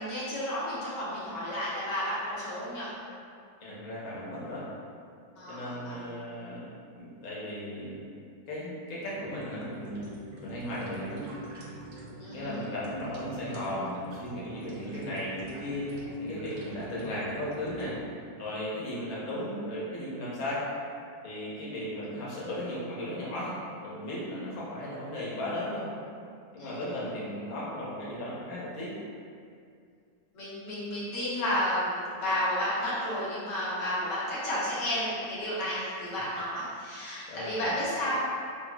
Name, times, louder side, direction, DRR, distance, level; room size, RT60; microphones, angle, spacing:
voice 1, 0.0-3.0 5.4-6.1 12.2-12.6 26.6-26.8 30.3-38.4, equal, 80° left, -10 dB, 1.6 m, -32 dB
voice 2, 3.6-4.7 5.5-6.6 7.0-8.1 8.5-10.1 10.4-11.2 12.3-18.0 18.4-20.7 21.2-25.9 26.5-28.9 37.3-37.8, left 1 dB, 55° left, -7 dB, 1.0 m, -36 dB
sound 1, 9.0-18.0, right 1 dB, 90° right, 1.3 m, -45 dB
4.7 x 2.0 x 2.2 m, 2.3 s
omnidirectional pair, 1.9 m